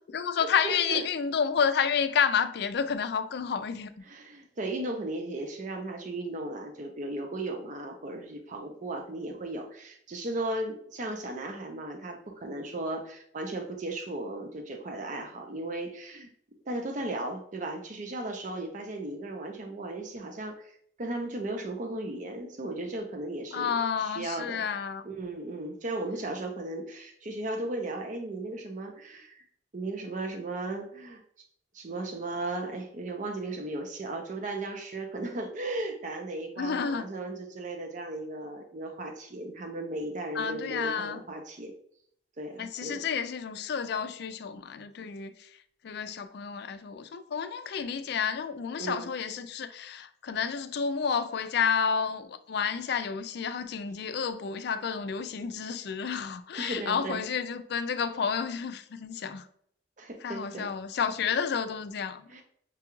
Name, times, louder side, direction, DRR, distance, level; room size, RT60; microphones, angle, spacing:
voice 1, 0.1-3.9 23.5-25.0 36.6-37.1 40.3-41.2 42.6-45.5 45.8-59.5 60.2-62.3, left 6 dB, 60° left, 0.4 m, -30 dB
voice 2, 0.6-1.0 4.1-16.3 16.7-23.7 24.0-24.7 25.0-29.4 29.7-31.2 31.7-41.7 42.4-43.1 48.8-49.1 56.6-57.2 60.0-60.7 62.3-62.4, right 2 dB, 45° right, 0.6 m, -36 dB
5.9 x 2.3 x 3.0 m
head